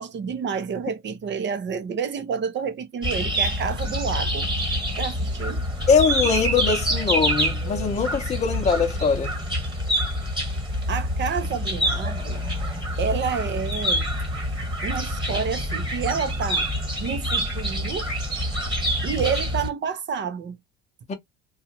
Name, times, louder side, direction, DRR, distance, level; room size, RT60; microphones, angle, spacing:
voice 1, 0.0-4.5 5.0-5.6 10.9-12.4 13.0-14.1 14.8-16.7 17.0-18.1 19.0-20.6, right 6 dB, 35° right, 0.7 m, -29 dB
sound 1, 3.0-19.7, equal, 15° right, 1.5 m, -26 dB
voice 2, 5.9-9.3 21.1-21.2, left 5 dB, 20° left, 0.8 m, -22 dB
2.8 x 2.4 x 2.8 m
supercardioid pair, 100°, 33 cm